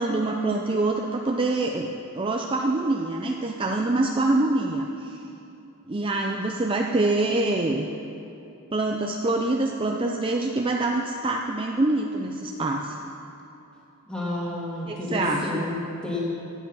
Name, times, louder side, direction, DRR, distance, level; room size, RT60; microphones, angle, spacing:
voice 1, 0.0-1.9 2.1-5.2 5.9-7.9 8.7-13.0 14.9-15.6, right 2 dB, 25° right, 1 dB, 0.5 m, -25 dB
voice 2, 14.1-16.2, left 2 dB, 5° left, -7 dB, 2.7 m, -31 dB
16.5 x 9.3 x 5.5 m, 2.9 s
head